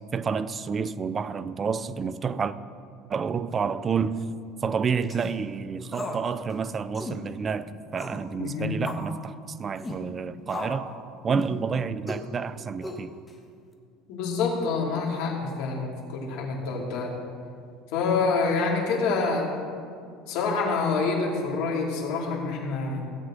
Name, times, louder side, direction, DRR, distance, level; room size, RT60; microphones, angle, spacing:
voice 1, 0.1-2.5 3.1-4.2 4.6-10.9 11.2-13.1, right 6 dB, 25° right, 0.4 m, -29 dB
sound 1, 5.0-5.3 5.9-6.3 6.5-6.6 6.9-7.2 8.0-8.2 8.9-9.1 9.8-10.0 10.5-10.9 11.3-11.6 12.1-12.3 12.8-13.3, left 2 dB, 15° left, 1.2 m, -35 dB
voice 2, 8.4-8.8 14.1-17.1 17.9-19.5 20.3-23.0, left 4 dB, 70° left, 2.5 m, -27 dB
16.0 x 8.1 x 3.8 m
cardioid pair, 135°, 0 cm